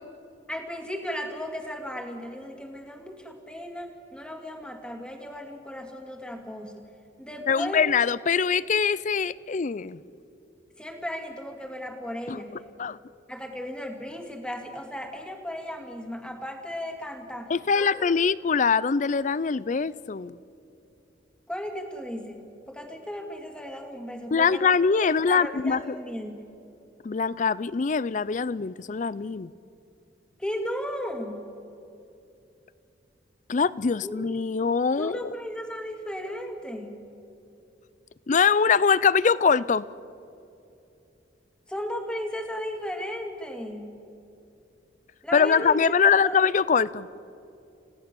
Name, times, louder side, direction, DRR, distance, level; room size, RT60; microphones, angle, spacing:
voice 1, 0.5-6.9 7.2-7.8 10.8-12.5 13.3-18.3 21.5-24.7 25.0-26.5 30.4-31.5 34.0-34.2 35.0-37.0 41.7-44.0 45.2-45.9 46.2-46.4, equal, 5° left, 4 dB, 2.2 m, -35 dB
voice 2, 7.5-10.0 12.3-12.4 12.8-13.0 17.5-20.3 24.3-25.8 27.0-29.5 33.5-35.3 38.3-39.8 45.3-47.1, left 5 dB, 40° left, 20 dB, 0.4 m, -23 dB
29.5 x 17.0 x 7.0 m, 2.7 s
head